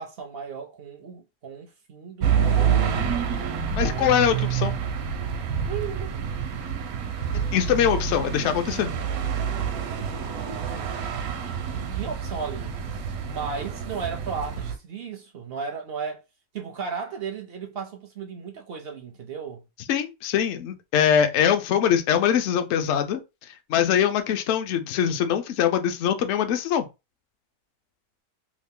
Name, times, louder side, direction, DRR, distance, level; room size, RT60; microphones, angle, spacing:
voice 1, 0.0-3.1 3.8-4.2 5.7-6.2 11.7-12.8 13.2-16.2 16.5-19.6, right 6 dB, 60° right, 0.6 m, -35 dB
sound 1, 2.2-14.8, right 7 dB, 80° right, 1.1 m, -27 dB
voice 2, 3.8-4.7 7.3-8.9 19.9-23.2 23.7-26.9, left 9 dB, 65° left, 0.7 m, -23 dB
2.9 x 2.4 x 3.5 m
omnidirectional pair, 1.5 m